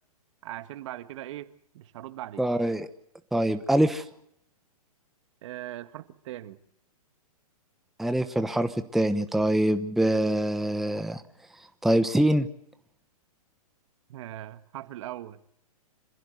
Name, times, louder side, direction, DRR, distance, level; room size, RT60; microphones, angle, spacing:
voice 1, 0.4-2.5 5.4-6.6 14.1-15.4, right 14 dB, 50° right, 11 dB, 1.8 m, -40 dB
voice 2, 2.4-2.9 3.3-4.0 8.0-11.2 11.8-12.5, right 1 dB, ahead, 8 dB, 1.1 m, -24 dB
26.5 x 15.5 x 8.1 m, 0.74 s
hypercardioid pair, 130°, 19 cm